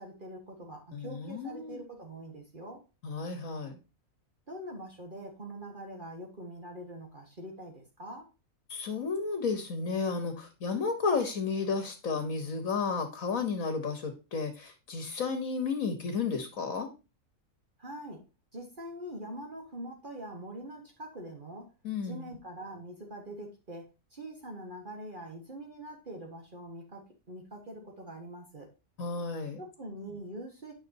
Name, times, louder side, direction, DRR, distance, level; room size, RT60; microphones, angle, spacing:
voice 1, 0.0-2.8 4.5-8.3 17.8-18.2 18.5-21.7 22.0-28.7 29.6-30.7, right 1 dB, 35° right, 1 dB, 1.7 m, -44 dB
voice 2, 0.9-1.8 3.0-3.7 8.7-16.9 21.8-22.3 29.0-29.6, left 5 dB, 70° left, 7 dB, 1.6 m, -32 dB
9.7 x 5.8 x 2.7 m, 0.29 s
omnidirectional pair, 1.5 m